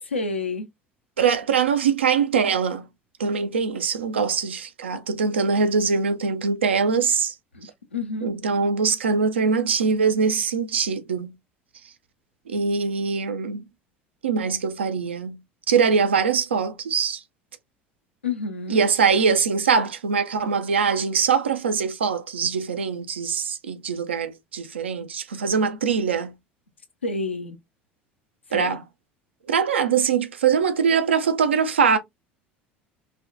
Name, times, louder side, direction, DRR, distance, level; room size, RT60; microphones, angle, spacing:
voice 1, 0.0-0.7 7.5-8.3 18.2-18.8 27.0-27.6 28.5-28.8, left 3 dB, 85° left, 0.6 m, -29 dB
voice 2, 1.2-2.9 3.2-7.3 8.2-11.3 12.5-13.6 14.2-15.4 15.7-17.2 18.7-26.3 28.5-28.8 29.5-32.0, right 6 dB, 80° right, 0.5 m, -22 dB
3.4 x 2.2 x 2.4 m
figure-of-eight pair, 70°, 6 cm